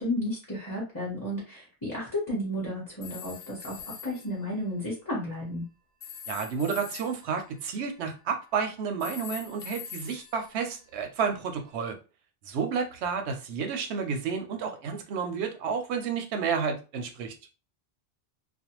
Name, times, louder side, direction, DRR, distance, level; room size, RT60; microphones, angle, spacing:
voice 1, 0.0-5.6, left 1 dB, 20° left, -6 dB, 0.9 m, -33 dB
sound 1, 3.0-4.3 6.0-8.5 9.0-11.3, left 7 dB, 80° left, 1.1 m, -44 dB
voice 2, 6.3-12.0 12.4-17.3, right 6 dB, 85° right, 6 dB, 0.9 m, -31 dB
2.5 x 2.1 x 2.9 m, 0.32 s
omnidirectional pair, 1.1 m